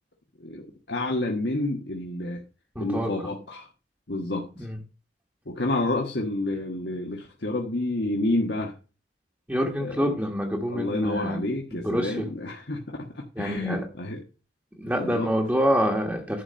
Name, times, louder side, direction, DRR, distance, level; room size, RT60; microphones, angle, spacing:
voice 1, 0.4-2.4 2.8-3.7 4.1-4.7 5.4-8.7 9.8-10.2 10.7-14.2 15.0-15.3, left 2 dB, 75° left, 1.4 m, -29 dB
voice 2, 2.7-3.1 4.6-4.8 9.5-11.4 11.7-12.3 13.4-13.8 14.8-16.4, equal, 10° right, 1.3 m, -26 dB
11.0 x 4.3 x 6.4 m
head